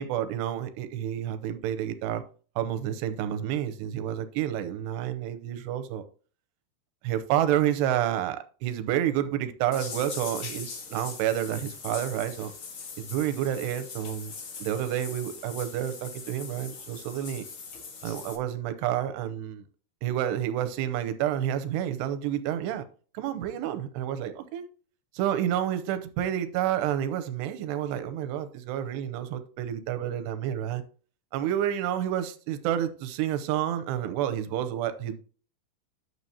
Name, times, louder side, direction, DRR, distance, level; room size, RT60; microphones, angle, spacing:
voice 1, 0.0-2.2 2.6-6.1 7.0-12.5 13.0-14.3 14.6-17.4 18.0-19.6 20.0-22.8 23.1-24.7 25.1-30.8 31.3-35.2, right 11 dB, 85° right, 2.8 m, -29 dB
sound 1, 9.7-18.4, left 5 dB, 85° left, 1.1 m, -41 dB
11.0 x 6.8 x 2.8 m
omnidirectional pair, 5.0 m